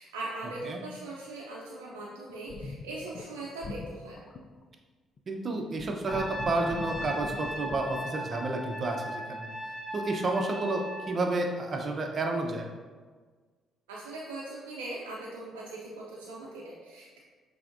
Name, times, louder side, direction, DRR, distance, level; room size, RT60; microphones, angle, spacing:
voice 1, 0.0-4.2 13.9-17.2, right 2 dB, 90° right, -5 dB, 0.5 m, -40 dB
sound 1, 2.3-3.3 3.6-4.6 5.2-5.3 5.7-7.8, left 3 dB, 55° left, 0.4 m, -41 dB
voice 2, 5.3-9.5 9.9-12.7, right 2 dB, 45° right, 3 dB, 0.7 m, -31 dB
Trumpet, 6.1-11.1, right 1 dB, 10° left, 0.8 m, -38 dB
5.7 x 3.5 x 2.6 m, 1.5 s
hypercardioid pair, 50°, 0 cm